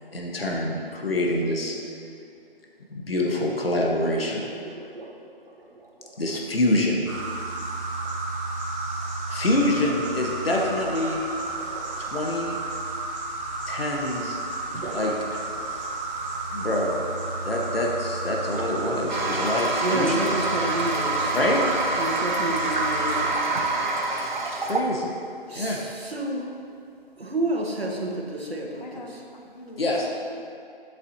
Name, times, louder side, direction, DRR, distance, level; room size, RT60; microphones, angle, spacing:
voice 1, 0.1-1.8 2.9-4.4 6.2-7.1 9.3-11.2 12.0-12.6 13.7-14.4 14.9-15.1 16.5-17.1 17.4-20.2 21.3-21.9 24.6-25.1 25.5-25.8 29.8-30.1, left 1 dB, 70° left, -1 dB, 1.5 m, -26 dB
sound 1, 4.3-7.0 8.9-9.0 10.5-12.3 14.7-16.0 18.5-20.0 20.7-20.9 22.1-22.3 23.5-23.6, right 3 dB, 65° right, 1.3 m, -41 dB
sound 2, 7.1-23.3, right 2 dB, 30° right, 1.5 m, -32 dB
Toilet flush, 19.1-24.8, right 2 dB, 50° right, 1.0 m, -26 dB
voice 2, 19.8-21.3 22.0-23.5 24.2-24.3 25.5-26.5 27.2-29.1, right 1 dB, 85° right, -1 dB, 1.7 m, -29 dB
voice 3, 28.8-30.1, left 1 dB, 45° left, 1 dB, 1.1 m, -43 dB
11.0 x 8.2 x 2.9 m, 2.6 s
figure-of-eight pair, 150°, 30 cm